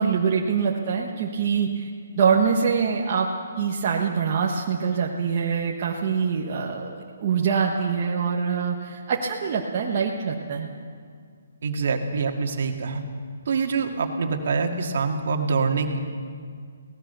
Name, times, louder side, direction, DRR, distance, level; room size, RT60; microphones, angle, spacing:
voice 1, 0.0-1.9 2.2-3.3 3.6-10.7, right 6 dB, 25° right, -2 dB, 1.2 m, -24 dB
voice 2, 11.6-13.0 13.5-16.0, right 4 dB, 45° right, 3 dB, 2.1 m, -25 dB
23.5 x 18.0 x 6.9 m, 2.1 s
hypercardioid pair, 180°, 0 cm